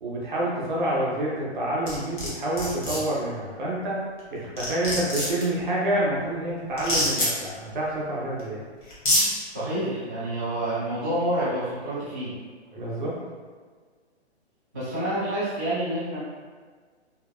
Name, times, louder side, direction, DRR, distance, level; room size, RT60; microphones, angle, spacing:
voice 1, 0.0-4.0 4.3-8.7 12.7-13.2, right 1 dB, 45° right, -5 dB, 0.7 m, -28 dB
sound 1, 1.9-2.3 2.6-3.0 4.2-4.3 4.6-5.4 6.8-7.3 8.4-8.5 8.9-9.2, left 1 dB, 45° left, 0.9 m, -24 dB
voice 2, 9.5-12.4 14.7-16.2, right 1 dB, 15° right, -17 dB, 0.5 m, -28 dB
2.8 x 2.3 x 2.3 m, 1.5 s
hypercardioid pair, 170°, 34 cm